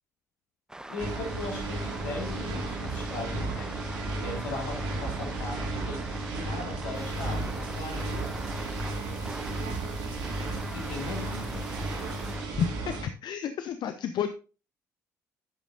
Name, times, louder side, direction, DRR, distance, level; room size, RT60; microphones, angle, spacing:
sound 1, 0.7-12.5, right 1 dB, 5° right, 1.0 m, -42 dB
voice 1, 0.9-3.8 4.2-6.1 6.3-8.3 10.7-11.7, left 3 dB, 75° left, 3.2 m, -38 dB
sound 2, 1.0-13.1, right 2 dB, 65° right, 2.5 m, -34 dB
sound 3, 6.9-12.4, right 2 dB, 85° right, 2.4 m, -52 dB
voice 2, 12.6-12.9 13.2-14.3, left 8 dB, 55° left, 0.7 m, -30 dB
11.0 x 8.2 x 2.6 m
hypercardioid pair, 50°, 9 cm